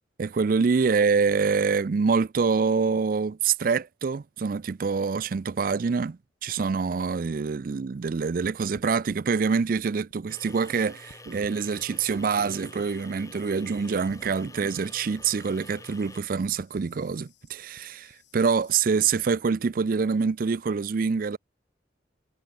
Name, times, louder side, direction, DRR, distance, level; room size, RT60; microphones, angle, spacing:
voice 1, 0.2-21.4, right 5 dB, 50° right, 0.4 m, -26 dB
sound 1, 8.4-10.8 11.1-13.5 13.8-19.2, left 1 dB, 80° left, 6.8 m, -54 dB
sound 2, 10.3-16.2, left 2 dB, 20° left, 3.3 m, -48 dB
head